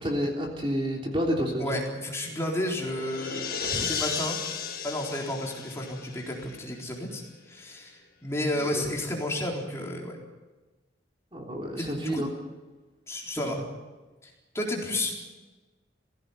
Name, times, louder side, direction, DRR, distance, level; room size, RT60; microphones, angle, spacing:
voice 1, 0.0-1.8 3.7-3.9 8.6-8.8 11.3-12.3, equal, 30° right, 0 dB, 3.5 m, -30 dB
voice 2, 1.6-3.5 3.7-4.4 4.8-7.2 7.5-10.2 11.8-12.2 13.1-13.6 14.5-15.4, left 1 dB, 15° left, -2 dB, 4.0 m, -32 dB
sound 1, 2.2-6.8, left 6 dB, 50° left, 2.1 m, -35 dB
20.0 x 16.5 x 9.4 m, 1.2 s
head